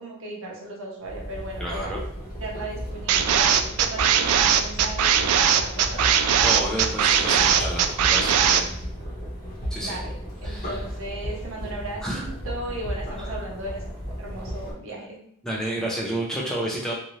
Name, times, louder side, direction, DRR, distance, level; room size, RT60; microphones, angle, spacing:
voice 1, 0.0-2.0 2.4-6.1 9.8-10.2 10.4-13.8 14.2-15.2, right 1 dB, 65° right, -2 dB, 0.8 m, -36 dB
sound 1, 1.0-14.7, equal, 40° left, 0.8 m, -34 dB
voice 2, 1.6-2.0 6.4-8.6 9.7-10.0 10.4-10.8 12.0-12.2 15.4-16.9, right 1 dB, 5° left, -4 dB, 0.4 m, -30 dB
sound 2, 3.1-8.6, right 8 dB, 90° right, 0.3 m, -20 dB
2.7 x 2.5 x 3.0 m, 0.68 s
head